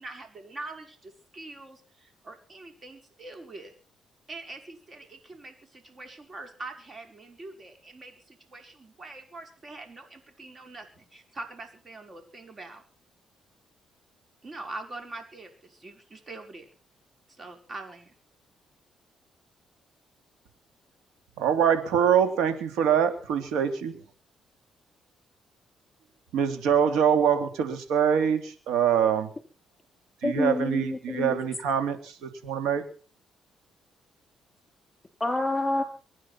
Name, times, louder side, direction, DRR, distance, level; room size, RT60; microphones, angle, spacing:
voice 1, 0.0-3.7 4.3-12.8 14.4-16.7 17.4-18.1, right 2 dB, 35° right, 5 dB, 5.5 m, -43 dB
voice 2, 21.4-23.9 26.3-29.3 30.2-32.8, right 8 dB, 90° right, 8 dB, 3.0 m, -24 dB
voice 3, 30.2-31.4 35.2-35.8, left 2 dB, 20° left, 8 dB, 4.2 m, -27 dB
24.0 x 9.9 x 5.9 m, 0.39 s
cardioid pair, 90°, 0 cm